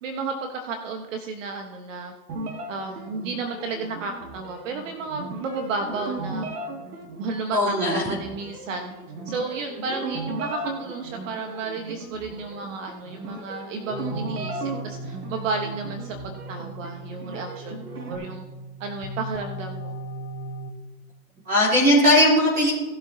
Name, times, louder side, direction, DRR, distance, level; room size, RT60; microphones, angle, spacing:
voice 1, 0.0-2.1 2.7-6.5 7.2-8.9 9.3-18.4 18.8-19.9, right 4 dB, 55° right, 4 dB, 1.3 m, -32 dB
sound 1, 2.3-18.2, right 2 dB, 75° right, 2.4 m, -36 dB
voice 2, 7.5-8.0 21.4-22.7, left 1 dB, 20° right, -6 dB, 3.5 m, -18 dB
sound 2, 13.9-20.7, right 1 dB, 50° left, 1.4 m, -37 dB
18.5 x 7.6 x 2.8 m, 1.2 s
hypercardioid pair, 125°, 46 cm